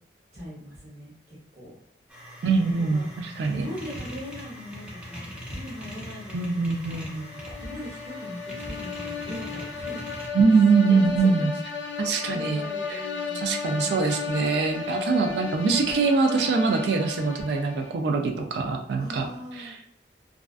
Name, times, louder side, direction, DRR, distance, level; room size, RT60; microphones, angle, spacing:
voice 1, 0.3-1.7 2.7-3.1 3.5-5.2 5.5-8.4 8.6-10.2 10.5-10.6 10.9-11.5 11.8-14.0 19.0-19.7, equal, 50° right, -9 dB, 0.8 m, -40 dB
sound 1, 2.1-10.3, equal, 5° right, 0.5 m, -42 dB
voice 2, 2.4-3.7 6.3-7.3 10.3-11.5 12.0-12.6 12.9-13.0 13.4-19.3 19.5-19.8, right 4 dB, 65° right, 3 dB, 0.3 m, -23 dB
sound 2, 7.2-18.2, left 5 dB, 75° left, 0.4 m, -34 dB
2.3 x 2.3 x 2.3 m, 0.74 s
head